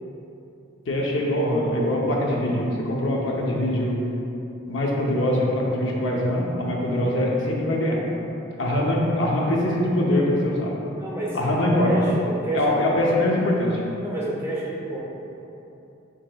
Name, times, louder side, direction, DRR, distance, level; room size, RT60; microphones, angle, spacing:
voice 1, 0.9-4.0 4.7-8.0 8.6-10.8 11.3-11.9 12.5-13.8, left 1 dB, 75° left, -2 dB, 0.7 m, -23 dB
voice 2, 1.6-2.0 11.0-11.4 11.8-12.8 14.0-15.0, right 2 dB, 15° right, -6 dB, 0.6 m, -29 dB
7.3 x 2.9 x 2.2 m, 2.9 s
head